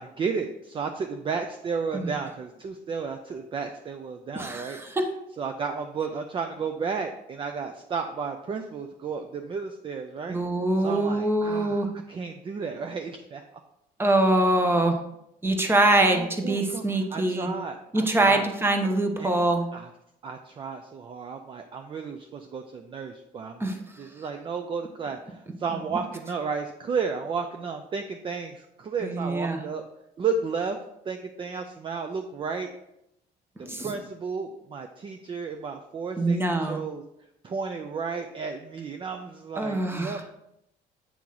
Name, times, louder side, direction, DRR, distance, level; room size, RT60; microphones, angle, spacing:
voice 1, 0.0-4.8 5.4-10.4 10.8-13.6 16.0-16.8 17.1-18.5 19.2-19.3 19.7-19.9 20.2-23.7 24.0-29.9 30.2-30.8 31.1-32.7 33.6-37.0 37.4-40.2, right 5 dB, 30° right, 6 dB, 0.4 m, -33 dB
voice 2, 4.3-5.1 10.3-11.9 14.0-15.0 15.4-17.5 17.9-19.6 23.6-23.8 29.0-29.6 33.6-33.9 36.2-36.8 39.6-40.2, right 2 dB, 15° right, 5 dB, 0.8 m, -24 dB
8.4 x 3.0 x 3.8 m, 0.82 s
cardioid pair, 110°, 17 cm